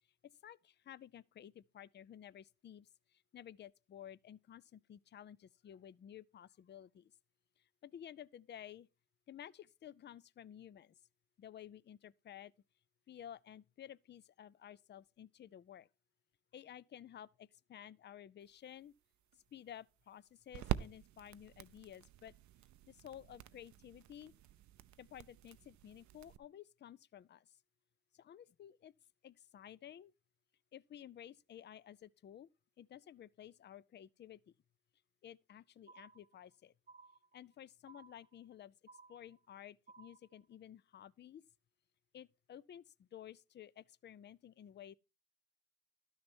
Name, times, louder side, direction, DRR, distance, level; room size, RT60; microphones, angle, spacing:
voice 1, 0.9-2.8 3.3-5.4 5.6-7.0 7.8-8.9 9.3-10.9 11.4-12.5 13.1-15.8 16.5-17.3 17.7-18.9 19.5-22.3 23.0-24.3 25.0-27.4 28.2-28.9 29.2-30.1 30.7-32.5 32.8-34.4 35.2-36.7 37.3-38.7 39.1-41.4 42.1-42.8 43.1-44.9, left 10 dB, 35° left, 0.4 m, -53 dB
sound 1, 18.4-26.4, right 13 dB, 70° right, 0.6 m, -46 dB
sound 2, 35.9-36.5 36.9-37.5 37.9-38.5 38.9-39.5 39.9-40.5, right 4 dB, 25° right, 0.7 m, -60 dB
12.0 x 6.5 x 4.4 m
cardioid pair, 90°, 30 cm